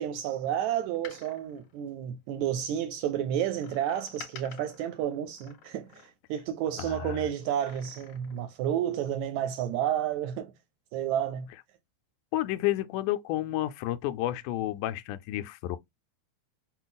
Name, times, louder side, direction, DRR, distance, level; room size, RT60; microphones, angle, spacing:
voice 1, 0.0-5.9 6.3-10.5 10.9-11.5, right 10 dB, 80° right, 1.7 m, -31 dB
Door, 0.8-2.7 3.6-6.5 7.4-8.5 8.8-8.9, left 8 dB, 55° left, 2.0 m, -51 dB
voice 2, 6.8-7.2 12.3-15.8, left 15 dB, 85° left, 2.0 m, -31 dB
5.8 x 2.2 x 3.9 m
omnidirectional pair, 3.6 m